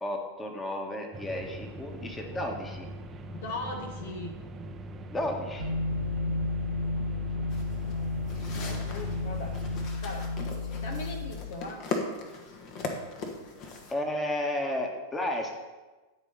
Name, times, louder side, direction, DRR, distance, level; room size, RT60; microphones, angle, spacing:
voice 1, 0.0-2.9 5.1-5.7 13.9-15.5, left 1 dB, 15° left, 3 dB, 1.6 m, -32 dB
sound 1, 1.1-9.9, right 1 dB, 20° right, 0.7 m, -42 dB
voice 2, 3.3-4.3 5.9-6.3 7.8-9.6 10.0-10.3 10.8-11.9 13.4-13.5, left 2 dB, 55° left, 4 dB, 1.2 m, -40 dB
sound 2, 5.6-11.3, left 3 dB, 90° left, 2.0 m, -32 dB
sound 3, 7.5-13.9, left 3 dB, 40° left, 1.5 m, -39 dB
11.5 x 5.0 x 5.7 m, 1.2 s
figure-of-eight pair, 90°, 0 cm